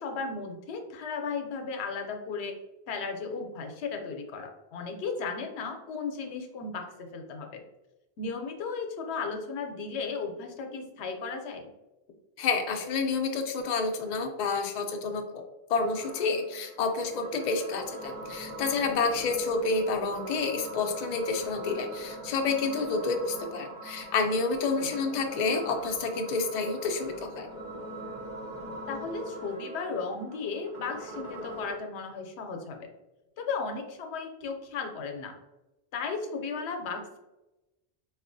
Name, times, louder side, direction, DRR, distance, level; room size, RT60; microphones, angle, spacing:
voice 1, 0.0-2.5 2.9-7.6 8.2-11.7 24.8-24.9 28.9-32.9 33.4-35.3 35.9-37.2, left 4 dB, 85° left, 4 dB, 0.9 m, -35 dB
voice 2, 12.4-15.4 15.7-27.5, left 4 dB, 55° left, 4 dB, 0.5 m, -29 dB
sound 1, 15.8-31.8, right 1 dB, 50° right, 1.0 m, -41 dB
4.1 x 2.3 x 2.5 m, 0.99 s
omnidirectional pair, 1.1 m